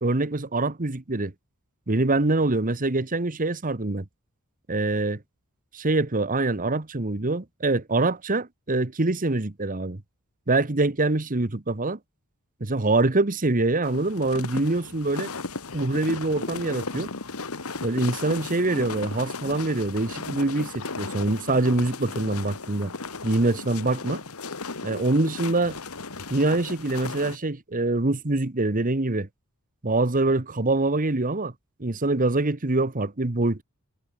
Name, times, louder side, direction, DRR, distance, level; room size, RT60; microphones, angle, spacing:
voice 1, 0.0-1.3 1.9-4.0 4.7-5.2 5.7-10.0 10.5-12.0 12.6-15.3 15.7-17.1 17.8-22.9 23.2-24.2 24.8-25.8 26.3-29.3 29.8-31.5 31.8-33.6, right 2 dB, 40° right, 1.3 m, -24 dB
sound 1, 13.8-27.4, left 4 dB, 70° left, 1.9 m, -36 dB
head